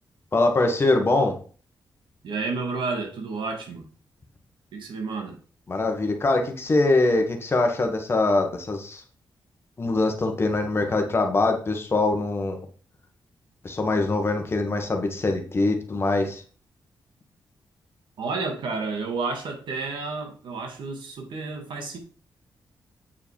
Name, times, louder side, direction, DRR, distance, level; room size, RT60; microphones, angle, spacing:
voice 1, 0.3-1.4 5.7-9.0 9.8-12.6 13.6-16.4, left 2 dB, 30° left, 4 dB, 1.5 m, -23 dB
voice 2, 2.2-3.9 4.7-5.4 18.2-22.0, right 4 dB, 80° right, 3 dB, 2.2 m, -31 dB
8.6 x 5.0 x 4.7 m, 0.40 s
wide cardioid pair, 125°, 8 cm